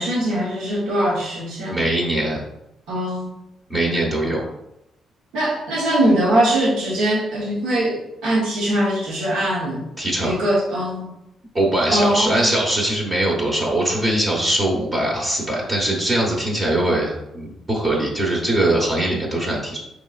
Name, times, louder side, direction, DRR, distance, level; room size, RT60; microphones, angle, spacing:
voice 1, 0.0-1.8 2.9-3.3 5.3-9.8 10.2-11.1 11.9-12.5, right 1 dB, 90° right, -4 dB, 1.1 m, -21 dB
voice 2, 1.7-2.4 3.7-4.4 10.0-10.3 11.5-19.8, right 1 dB, 30° right, -2 dB, 1.0 m, -21 dB
4.9 x 3.1 x 2.4 m, 0.88 s
cardioid pair, 90°, 0 cm